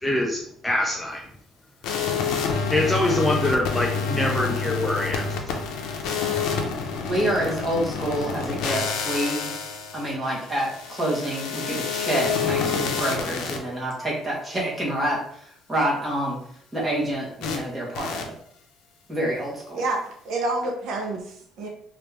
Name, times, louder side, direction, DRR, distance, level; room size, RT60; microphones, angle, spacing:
voice 1, 0.0-1.2 2.4-5.5, left 1 dB, 10° left, -1 dB, 0.4 m, -25 dB
sound 1, 1.8-13.6 17.4-17.6 17.9-18.2, left 5 dB, 85° left, 0.5 m, -28 dB
voice 2, 7.0-9.5 9.9-16.4 16.7-18.3 19.1-19.8, right 1 dB, 10° right, -5 dB, 1.1 m, -27 dB
voice 3, 19.7-21.7, right 2 dB, 60° right, 1 dB, 0.7 m, -28 dB
3.1 x 2.5 x 3.2 m, 0.66 s
cardioid pair, 160°, 0 cm